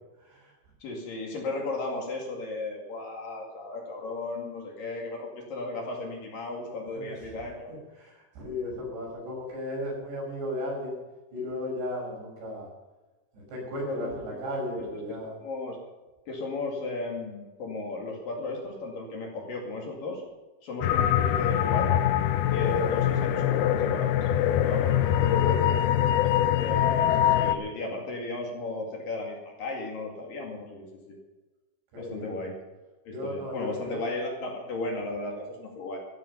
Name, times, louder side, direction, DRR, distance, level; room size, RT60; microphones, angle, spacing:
voice 1, 0.2-0.5 6.9-11.0 11.3-12.7 13.3-15.4 24.8-25.1 25.4-25.8 31.9-32.4 33.1-34.0, left 1 dB, 70° right, -2 dB, 8.1 m, -36 dB
voice 2, 0.8-7.7 13.8-14.4 15.4-15.8 16.3-20.2 20.6-22.1 22.5-24.3 24.6-24.9 25.3-25.5 26.1-26.3 26.6-31.2 32.0-32.5 33.1-36.0, left 2 dB, 55° left, 0 dB, 3.6 m, -35 dB
sound 1, 20.8-27.6, left 11 dB, 75° left, 2.3 m, -23 dB
15.0 x 12.5 x 5.6 m, 1.2 s
omnidirectional pair, 5.2 m